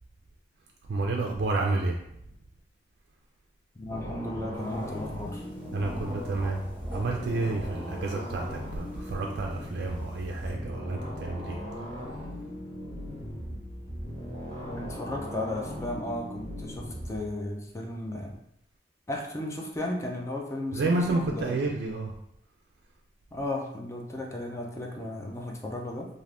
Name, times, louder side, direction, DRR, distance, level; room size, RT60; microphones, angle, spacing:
voice 1, 0.9-2.0 5.7-6.6 6.9-11.6 20.7-22.1, right 2 dB, 65° right, 1 dB, 0.3 m, -30 dB
voice 2, 3.8-5.5 14.6-18.3 19.1-21.6 23.3-26.1, left 1 dB, 15° left, 0 dB, 0.4 m, -35 dB
sound 1, 3.9-17.2, equal, 40° left, 1.1 m, -38 dB
sound 2, 4.5-10.5, equal, 10° right, 0.9 m, -46 dB
2.5 x 2.4 x 3.3 m, 0.76 s
head